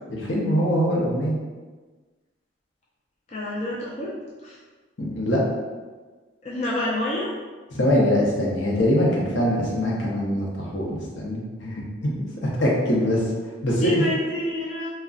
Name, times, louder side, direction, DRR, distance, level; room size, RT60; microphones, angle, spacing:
voice 1, 0.1-1.4 5.0-5.4 7.7-13.3 13.6-14.0, equal, 75° left, -3 dB, 0.7 m, -23 dB
voice 2, 3.3-4.2 4.4-4.6 6.4-7.3 13.8-14.9, left 1 dB, 35° left, -5 dB, 0.4 m, -27 dB
3.7 x 2.2 x 2.3 m, 1.3 s
head